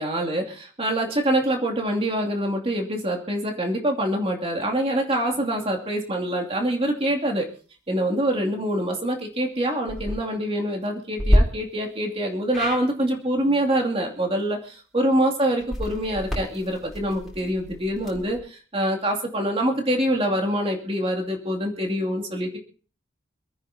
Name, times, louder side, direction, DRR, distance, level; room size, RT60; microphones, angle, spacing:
voice 1, 0.0-7.5 7.9-14.6 14.9-22.6, right 1 dB, 30° right, 1 dB, 2.6 m, -25 dB
sound 1, 9.8-10.2 11.2-11.4 12.5-12.8 15.6-18.4, equal, ahead, 5.4 m, -26 dB
27.0 x 9.8 x 2.9 m, 0.40 s
head